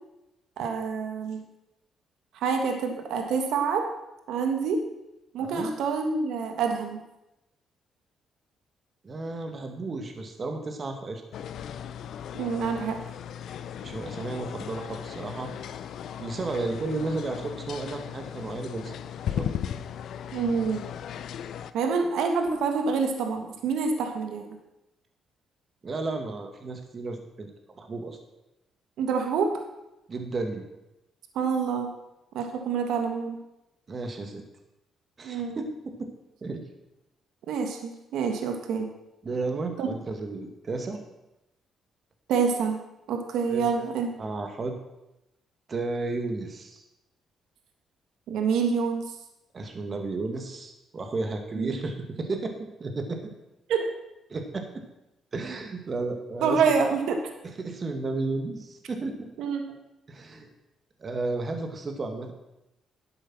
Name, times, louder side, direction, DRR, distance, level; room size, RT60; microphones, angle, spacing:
voice 1, 0.6-1.4 2.3-3.8 4.3-4.8 5.3-7.0 12.4-13.0 20.3-20.8 21.7-24.5 29.0-29.5 31.3-31.9 32.3-33.4 35.2-35.6 37.5-38.9 39.8-39.9 42.3-42.8 43.1-44.1 48.3-49.1 51.5-51.8 53.7-53.9 56.4-57.2 59.4-59.6, right 5 dB, 80° right, 4 dB, 1.5 m, -27 dB
voice 2, 5.4-5.7 9.0-11.2 13.8-15.5 16.2-19.0 19.3-19.5 25.8-27.5 27.8-28.2 30.1-30.7 33.9-34.4 35.2-36.1 36.4-36.6 39.2-41.0 43.5-43.9 44.2-44.7 45.7-46.9 49.5-53.3 54.3-54.8 55.3-56.7 57.6-59.3 60.1-60.5 61.0-62.3, right 3 dB, 40° right, 5 dB, 1.9 m, -33 dB
sound 1, 11.3-21.7, left 9 dB, 70° left, 0.6 m, -37 dB
11.5 x 7.9 x 6.1 m, 0.92 s
cardioid pair, 90°, 0 cm